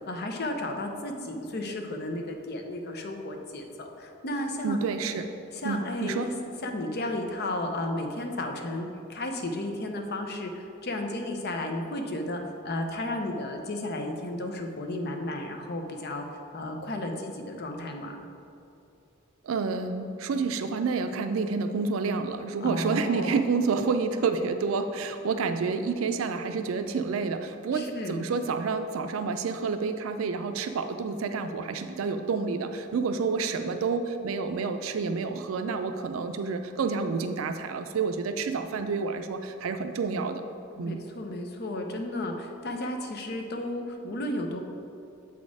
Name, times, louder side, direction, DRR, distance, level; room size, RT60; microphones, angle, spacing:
voice 1, 0.1-4.8 5.6-6.3 6.6-16.3 16.5-18.2 22.6-23.4 27.7-28.2 40.8-44.6, left 1 dB, 55° left, 4 dB, 0.7 m, -33 dB
voice 2, 4.6-5.3 5.6-6.3 19.4-40.4 40.8-41.0, right 4 dB, 80° right, 8 dB, 0.4 m, -29 dB
7.2 x 4.2 x 4.7 m, 2.7 s
head